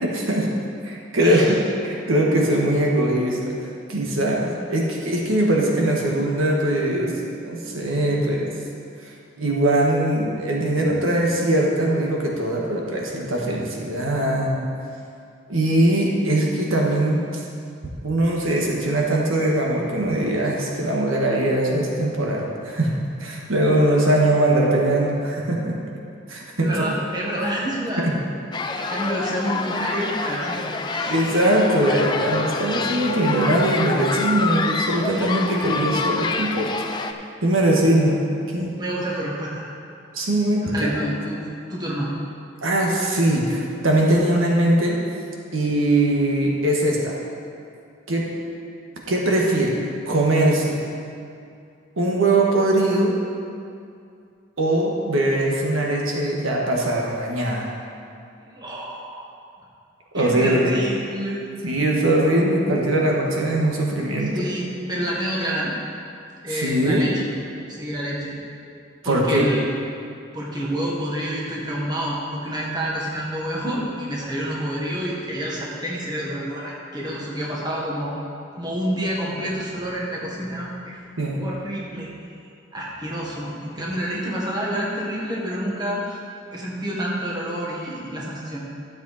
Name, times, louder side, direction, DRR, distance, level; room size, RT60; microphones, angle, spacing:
voice 1, 0.0-0.5 0.8-7.1 7.4-8.5 9.4-14.5 15.5-17.2 18.0-22.9 23.2-25.8 26.3-26.9 28.0-28.1 31.1-36.7 37.4-38.2 38.5-38.7 40.1-41.0 42.6-45.0 45.5-47.2 48.1-48.3 49.1-49.8 50.0-50.8 52.0-53.1 54.6-57.7 60.1-60.8 61.6-64.3 66.5-67.0 69.0-69.5 81.2-81.4, right 1 dB, 90° right, -2 dB, 1.6 m, -21 dB
voice 2, 1.2-1.6 26.6-28.1 28.7-30.6 30.9-31.3 38.8-39.7 40.6-42.1 58.4-59.3 60.1-61.5 64.3-65.7 66.4-67.3 67.7-68.4 69.0-69.6 70.3-78.1 78.5-81.0 81.4-82.1 82.7-86.2 86.5-88.6, equal, 20° right, -4 dB, 1.5 m, -28 dB
sound 1, 28.5-37.1, left 4 dB, 20° left, 0.4 m, -27 dB
12.5 x 7.4 x 4.2 m, 2.5 s
head